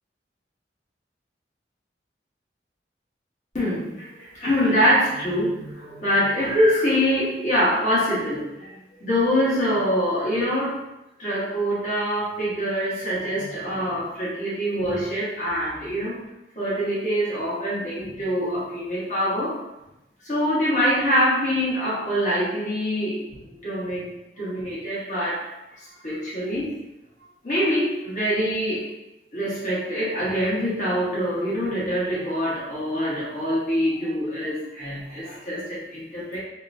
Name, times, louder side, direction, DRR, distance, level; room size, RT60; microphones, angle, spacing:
voice 1, 3.5-10.8 11.2-16.2 16.5-19.6 20.2-24.1 24.4-25.5 25.8-26.8 27.4-28.9 29.3-36.4, equal, 45° left, -7 dB, 1.2 m, -24 dB
3.3 x 2.9 x 2.6 m, 0.93 s
head